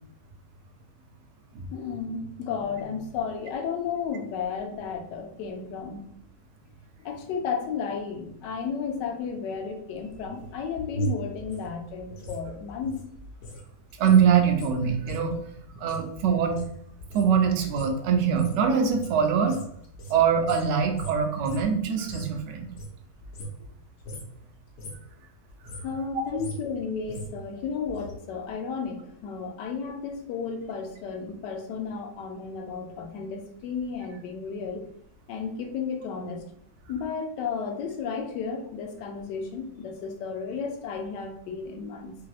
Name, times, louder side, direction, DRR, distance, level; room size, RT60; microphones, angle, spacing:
voice 1, 1.7-6.0 7.0-13.0 25.8-34.9 35.3-36.4 36.9-42.1, left 6 dB, 85° left, 4 dB, 1.2 m, -33 dB
sound 1, 10.2-13.6 13.9-22.4 22.7-23.7 24.0-24.4 24.7-25.1 25.5-28.1 28.4-28.5, right 2 dB, 65° left, 0.8 m, -39 dB
voice 2, 14.0-15.4 15.8-16.6 17.1-19.6 20.1-22.7, right 7 dB, 90° right, 4 dB, 1.2 m, -23 dB
3.4 x 2.7 x 2.4 m, 0.68 s
omnidirectional pair, 1.8 m